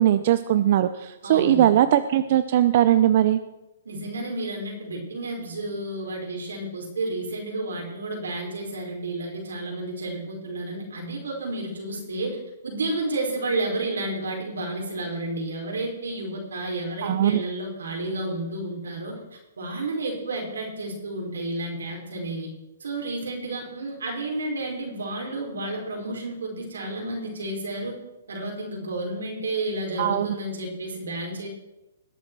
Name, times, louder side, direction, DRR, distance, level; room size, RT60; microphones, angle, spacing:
voice 1, 0.0-3.4 17.0-17.4 30.0-30.3, right 11 dB, 45° right, 11 dB, 0.6 m, -20 dB
voice 2, 1.2-1.7 3.8-12.4 12.6-19.2 19.6-22.5 22.8-28.0 28.3-31.5, right 2 dB, 90° right, 1 dB, 4.9 m, -31 dB
20.0 x 8.3 x 4.7 m, 0.95 s
hypercardioid pair, 150°, 0 cm